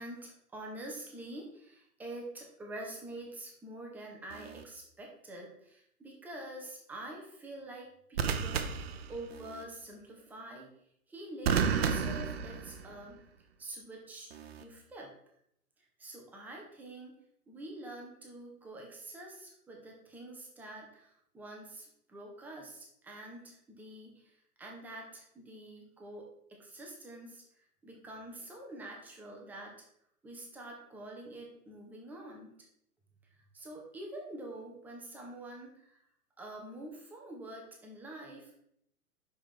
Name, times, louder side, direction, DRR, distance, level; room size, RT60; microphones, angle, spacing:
voice 1, 0.0-8.7 9.1-10.7 11.1-13.2 13.6-14.3 14.6-15.1 16.0-17.1 17.5-24.3 24.6-27.4 27.8-29.7 30.2-32.5 33.5-36.0 36.4-38.6, right 1 dB, 5° right, -1 dB, 0.6 m, -46 dB
sound 1, 4.3-4.6 8.1-9.6 11.4-13.1 14.3-14.6, right 6 dB, 45° right, 0.7 m, -32 dB
5.9 x 4.9 x 4.8 m, 0.73 s
figure-of-eight pair, 115°, 45 cm